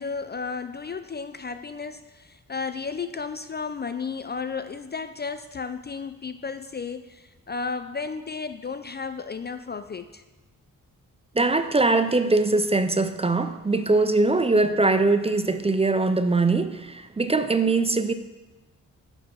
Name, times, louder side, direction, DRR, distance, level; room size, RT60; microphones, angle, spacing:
voice 1, 0.0-10.2, left 5 dB, 30° left, 0.4 m, -33 dB
voice 2, 11.4-18.1, right 3 dB, 20° right, 0.5 m, -22 dB
9.2 x 5.3 x 5.9 m
cardioid pair, 75°, 32 cm